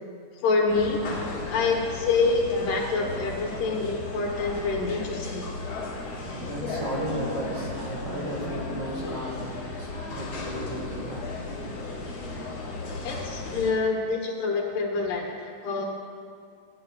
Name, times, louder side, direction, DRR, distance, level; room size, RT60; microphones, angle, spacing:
voice 1, 0.4-1.0 1.5-5.5 13.0-15.8, left 4 dB, 75° left, -1 dB, 2.7 m, -26 dB
sound 1, 0.7-13.7, left 3 dB, 55° left, 2.9 m, -35 dB
voice 2, 5.5-11.3 11.6-12.2 15.0-15.1, right 1 dB, 50° right, -4 dB, 2.4 m, -36 dB
14.5 x 9.9 x 2.3 m, 2.2 s
omnidirectional pair, 3.8 m